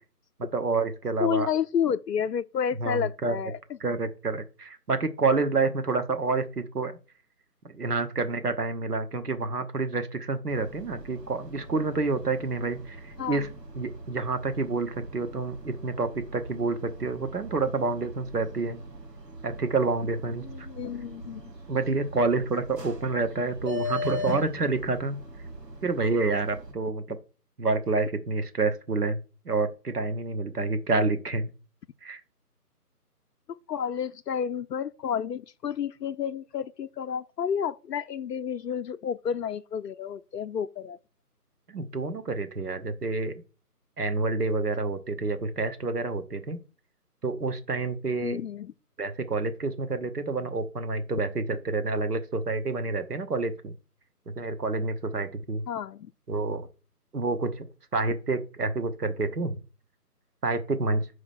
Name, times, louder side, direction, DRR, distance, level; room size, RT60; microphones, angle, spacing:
voice 1, 0.4-1.5 2.8-3.3 3.8-6.9 7.7-13.5 13.8-18.8 19.4-20.7 21.7-25.2 25.8-27.2 27.6-29.2 29.5-31.5 32.0-32.2 41.7-43.3 44.0-46.6 47.2-48.4 49.0-53.7 54.4-55.6 56.3-56.7 57.1-57.6 57.9-59.5 60.4-61.1, right 3 dB, 70° right, 1.1 m, -28 dB
voice 2, 1.2-3.6 13.2-13.4 20.4-21.5 33.7-41.0 48.2-48.7 55.7-56.1, left 8 dB, 85° left, 0.5 m, -30 dB
sound 1, 10.5-26.7, left 1 dB, 90° right, 1.8 m, -40 dB
5.4 x 4.9 x 5.9 m
figure-of-eight pair, 165°, 48 cm